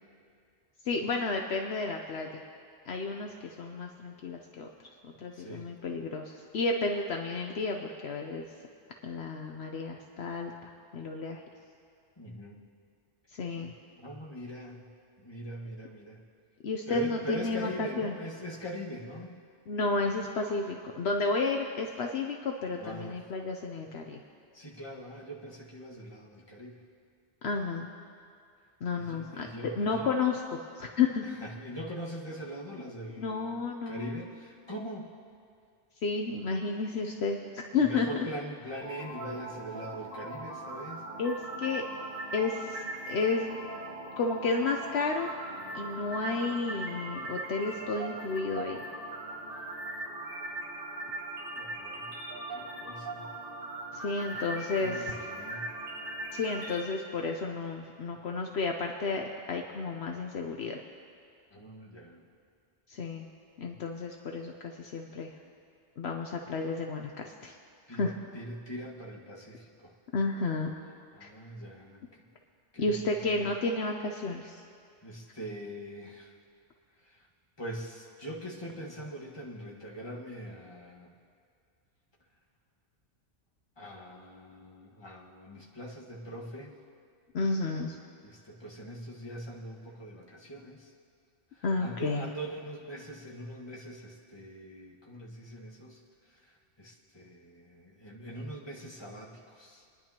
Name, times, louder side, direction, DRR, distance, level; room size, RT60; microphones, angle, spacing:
voice 1, 0.8-2.3 2.9-4.7 5.0-8.5 9.0-11.4 13.3-13.7 16.6-18.2 19.7-24.2 27.4-27.9 28.8-29.5 29.8-31.3 33.2-34.2 36.0-38.2 41.2-41.8 42.3-43.7 44.2-45.3 45.7-48.9 53.9-55.1 56.3-60.8 62.9-63.3 63.6-65.3 66.0-67.6 67.9-68.2 70.1-70.7 71.2-71.3 72.8-74.6 87.3-88.0 91.6-92.3, left 3 dB, 65° left, 2 dB, 1.0 m, -32 dB
voice 2, 5.3-5.7 12.2-12.6 13.6-13.7 14.0-14.9 15.2-16.2 16.9-19.4 22.8-23.2 24.5-26.8 28.9-30.1 31.2-33.5 33.8-35.1 37.7-41.0 49.6-49.7 51.5-52.2 52.5-53.3 54.8-55.7 61.5-62.3 67.9-69.9 71.1-72.0 72.7-73.5 75.0-76.3 77.0-77.2 77.6-81.1 83.8-86.7 88.2-90.9 91.5-96.0 96.3-99.9, right 1 dB, 20° left, -4 dB, 1.6 m, -42 dB
sound 1, 38.8-56.8, right 2 dB, 50° right, 3.0 m, -40 dB
26.5 x 10.5 x 2.9 m, 2.3 s
omnidirectional pair, 1.2 m